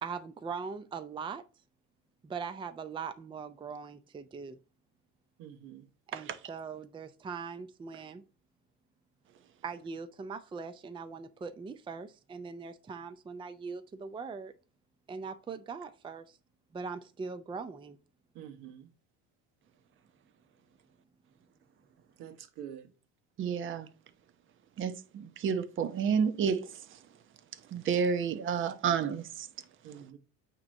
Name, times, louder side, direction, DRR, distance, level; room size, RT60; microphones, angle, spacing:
voice 1, 0.0-1.4 2.2-4.6 6.1-8.2 9.6-14.5 15.1-16.4 16.7-18.0, right 5 dB, 15° right, 0.5 m, -41 dB
voice 2, 5.4-5.9 18.3-18.9 22.2-22.9 29.8-30.2, right 9 dB, 70° right, 1.2 m, -46 dB
voice 3, 23.4-23.9 24.8-26.7 27.7-29.5, right 6 dB, 35° right, 0.9 m, -30 dB
8.7 x 3.0 x 5.3 m
supercardioid pair, 110°, 33 cm